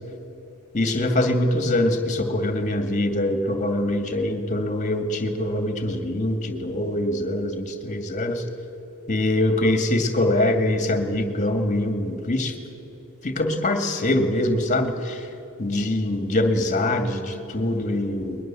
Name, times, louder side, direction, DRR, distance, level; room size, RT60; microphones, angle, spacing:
voice 1, 0.7-8.4 9.1-12.5 13.2-15.2 15.6-18.4, left 1 dB, 35° left, 7 dB, 2.4 m, -23 dB
21.5 x 20.5 x 7.8 m, 2.8 s
head